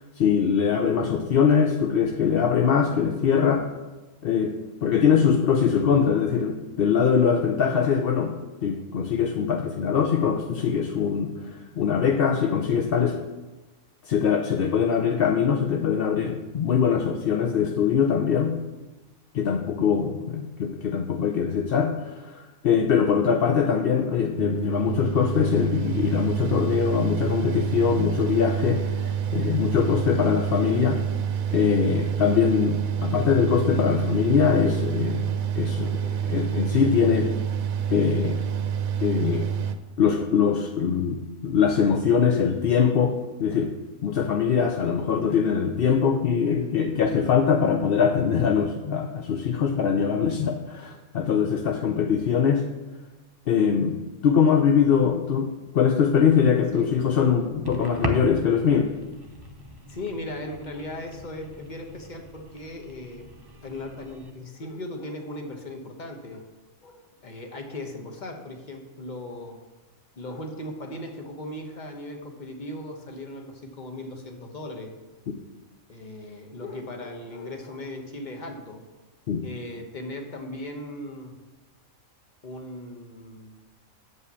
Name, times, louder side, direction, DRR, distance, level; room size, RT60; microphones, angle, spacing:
voice 1, 0.0-3.7 4.2-4.5 4.8-8.3 8.6-13.2 14.0-18.6 19.3-31.0 31.5-35.2 35.5-37.3 37.9-38.4 39.0-39.5 40.0-43.8 44.0-52.7 53.5-58.9 79.3-79.4, left 7 dB, 55° left, 2 dB, 0.7 m, -22 dB
Mechanical fan, 24.3-39.8, right 8 dB, 85° right, 1.1 m, -28 dB
sound 1, 56.1-64.3, equal, 20° right, 0.8 m, -38 dB
voice 2, 59.9-63.3 63.6-66.5 66.8-69.6 70.2-74.9 75.9-78.8 79.4-81.4 82.4-83.5, left 1 dB, 35° left, 3 dB, 1.2 m, -38 dB
7.9 x 5.5 x 7.0 m, 1.1 s
omnidirectional pair, 1.5 m